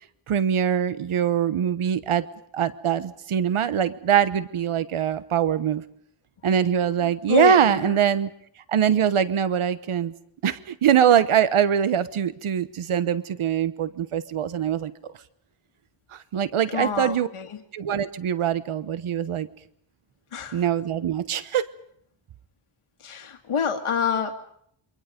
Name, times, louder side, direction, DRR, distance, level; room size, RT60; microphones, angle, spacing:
voice 1, 0.3-2.2 2.5-5.8 6.4-8.3 8.7-10.1 10.4-14.9 16.1-17.3 17.7-19.5 20.5-21.6, right 9 dB, 85° right, 13 dB, 1.1 m, -23 dB
voice 2, 7.0-8.0 16.7-17.6 20.3-20.7 23.0-24.3, left 6 dB, 85° left, 4 dB, 2.1 m, -27 dB
28.0 x 25.0 x 5.2 m, 0.67 s
wide cardioid pair, 130°, 49 cm